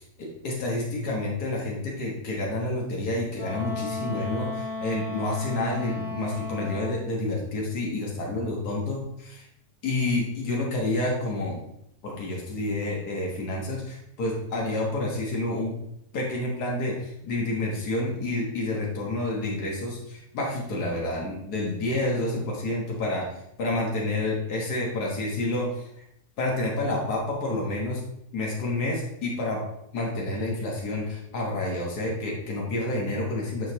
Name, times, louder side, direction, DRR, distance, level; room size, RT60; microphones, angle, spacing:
voice 1, 0.0-9.4 9.8-11.6 12.0-15.8 16.1-25.9 26.4-28.0 28.3-29.6 29.9-33.7, left 2 dB, 80° left, -2 dB, 2.0 m, -29 dB
Wind instrument woodwind instrument, 3.4-7.1, left 3 dB, 40° left, 3.2 m, -34 dB
10.0 x 5.2 x 2.9 m, 0.77 s
omnidirectional pair, 1.7 m